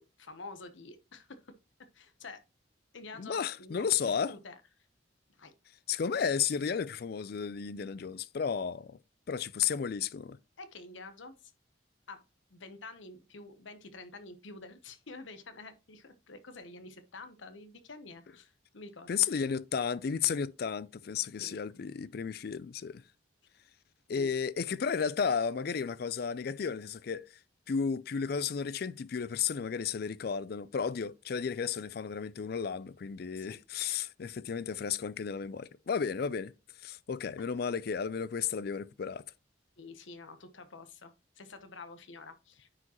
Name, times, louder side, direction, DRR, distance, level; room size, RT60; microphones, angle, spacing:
voice 1, 0.0-1.5 1.9-2.4 2.9-4.8 5.4-5.5 10.6-11.5 12.1-12.2 12.5-19.4 21.4-21.6 24.1-24.4 33.3-33.6 39.8-42.7, left 3 dB, 75° left, 0.9 m, -48 dB
voice 2, 3.2-4.3 5.9-9.0 9.3-10.4 19.1-23.0 24.1-27.3 27.7-36.5 36.8-39.2, left 6 dB, 50° left, 0.4 m, -33 dB
9.6 x 5.0 x 2.9 m
head